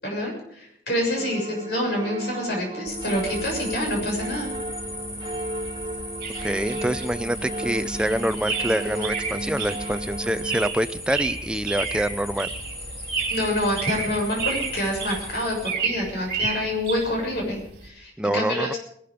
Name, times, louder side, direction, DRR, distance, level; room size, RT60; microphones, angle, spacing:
voice 1, 0.0-4.5 13.3-18.8, left 1 dB, 60° left, 0 dB, 7.1 m, -27 dB
sound 1, 1.2-10.7, right 1 dB, 25° right, 1.4 m, -34 dB
sound 2, 2.9-15.7, left 1 dB, 15° left, 2.8 m, -37 dB
sound 3, 6.2-17.9, right 5 dB, 55° right, 3.6 m, -32 dB
voice 2, 6.4-12.5 18.2-18.7, right 1 dB, 5° right, 10 dB, 0.5 m, -26 dB
20.0 x 12.5 x 5.1 m, 0.71 s
head